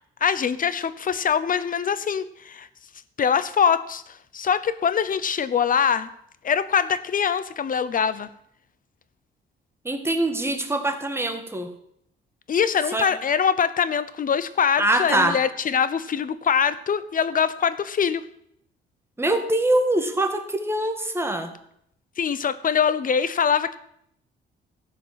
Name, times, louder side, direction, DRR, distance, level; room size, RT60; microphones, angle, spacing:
voice 1, 0.2-2.7 3.2-6.1 6.4-8.3 12.5-18.2 22.2-23.8, left 7 dB, 45° left, 15 dB, 0.8 m, -23 dB
voice 2, 9.8-11.7 12.9-13.1 14.8-15.4 19.2-21.5, right 1 dB, 10° right, 6 dB, 1.6 m, -23 dB
13.5 x 5.2 x 7.5 m, 0.72 s
cardioid pair, 90°, 20 cm